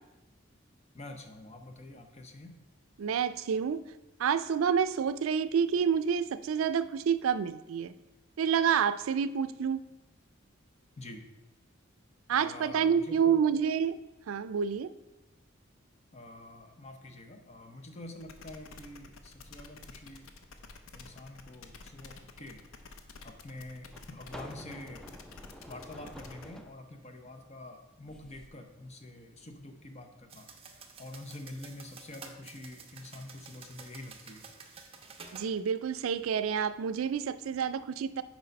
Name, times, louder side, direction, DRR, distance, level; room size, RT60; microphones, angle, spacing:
voice 1, 0.9-2.6 11.0-11.2 12.3-13.5 16.1-20.3 20.9-22.6 23.2-25.1 25.7-30.5 31.0-34.5, left 1 dB, 35° left, 5 dB, 0.8 m, -47 dB
voice 2, 3.0-3.8 4.2-7.9 8.4-9.8 12.3-14.0 14.3-14.9 35.3-38.2, right 7 dB, 85° right, 13 dB, 0.4 m, -28 dB
sound 1, 18.2-26.5, left 4 dB, 80° left, 0.7 m, -50 dB
sound 2, 22.8-22.9 23.9-26.8 28.0-28.5, equal, 5° left, 0.4 m, -48 dB
sound 3, 30.3-35.5, right 5 dB, 30° right, 0.8 m, -51 dB
6.7 x 4.6 x 5.2 m, 1.0 s
head